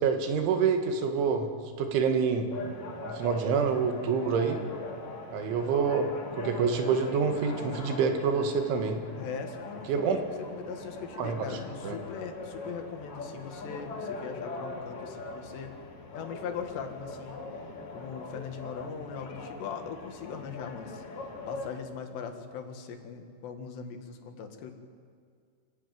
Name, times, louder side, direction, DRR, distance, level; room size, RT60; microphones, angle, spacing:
voice 1, 0.0-1.5 1.8-2.5 3.1-4.6 5.3-9.0 9.9-10.2 11.2-11.5 11.8-12.0, right 6 dB, 80° right, 6 dB, 4.1 m, -27 dB
sound 1, 2.5-21.7, left 3 dB, 45° left, 3.2 m, -41 dB
voice 2, 9.2-10.2 10.5-15.8 16.1-17.4 17.9-21.0 21.5-24.7, left 6 dB, 70° left, 5 dB, 3.7 m, -40 dB
26.0 x 16.0 x 9.3 m, 2.1 s
omnidirectional pair, 5.3 m